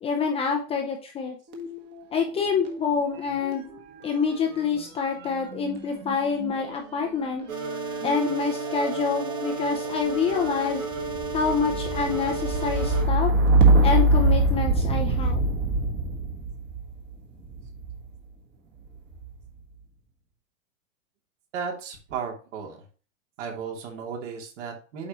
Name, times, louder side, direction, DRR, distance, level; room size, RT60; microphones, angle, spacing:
voice 1, 0.0-1.4 2.1-3.6 4.0-7.4 8.0-10.8 11.3-13.3 13.8-15.5, left 5 dB, 15° left, 2 dB, 0.6 m, -27 dB
sound 1, 1.5-2.8 3.1-18.1 18.9-19.5, right 2 dB, 25° right, 1.5 m, -26 dB
sound 2, 7.5-13.0, right 3 dB, 85° right, 4.0 m, -32 dB
voice 2, 21.5-22.8 23.4-25.1, right 6 dB, 60° right, 1 dB, 2.8 m, -34 dB
8.5 x 5.2 x 3.0 m, 0.38 s
supercardioid pair, 150°, 41 cm